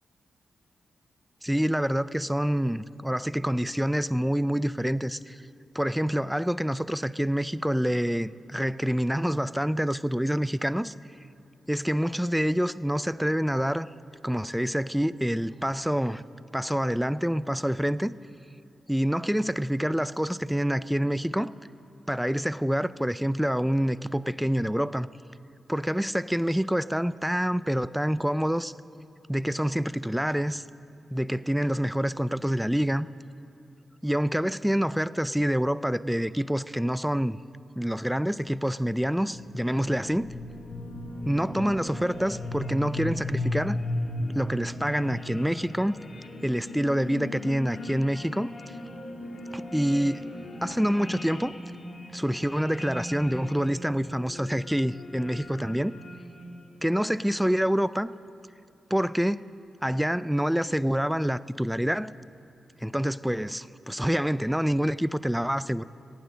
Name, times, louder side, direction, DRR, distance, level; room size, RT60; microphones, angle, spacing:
voice 1, 1.4-5.4 5.7-10.9 11.7-13.9 14.2-16.2 16.5-18.1 18.9-21.5 22.1-25.1 25.7-28.7 29.3-30.6 31.1-33.1 34.0-37.4 37.8-40.3 41.3-43.8 44.3-46.0 46.4-48.5 49.5-50.2 50.6-51.5 52.1-55.9 56.8-58.1 58.9-59.4 59.8-62.1 62.8-65.8, equal, 5° right, 17 dB, 0.4 m, -27 dB
sound 1, 38.8-56.9, left 1 dB, 55° left, 1.7 m, -37 dB
15.5 x 9.2 x 6.4 m, 2.7 s
supercardioid pair, 45°, 0 cm